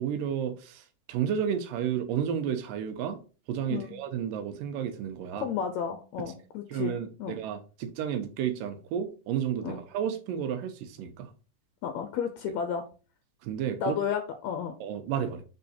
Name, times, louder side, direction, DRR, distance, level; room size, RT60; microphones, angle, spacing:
voice 1, 0.0-3.2 3.5-5.5 6.7-11.3 13.4-14.0 14.8-15.4, right 9 dB, 85° right, 2.4 m, -32 dB
voice 2, 5.4-7.4 9.6-9.8 11.8-12.8 13.8-14.8, left 7 dB, 80° left, 1.6 m, -32 dB
6.6 x 3.6 x 4.2 m
omnidirectional pair, 4.0 m